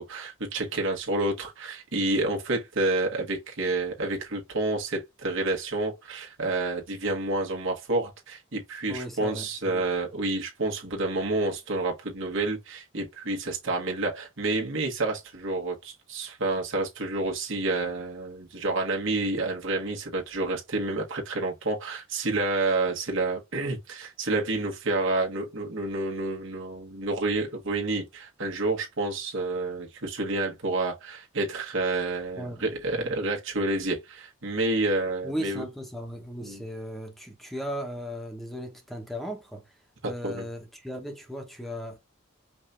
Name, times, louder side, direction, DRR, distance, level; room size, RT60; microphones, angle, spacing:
voice 1, 0.0-35.6 36.4-36.6 40.0-40.5, right 2 dB, 70° right, 1.6 m, -29 dB
voice 2, 8.9-9.8 32.4-33.1 35.2-39.7 40.0-42.0, equal, ahead, 1.0 m, -37 dB
5.2 x 2.7 x 3.3 m
head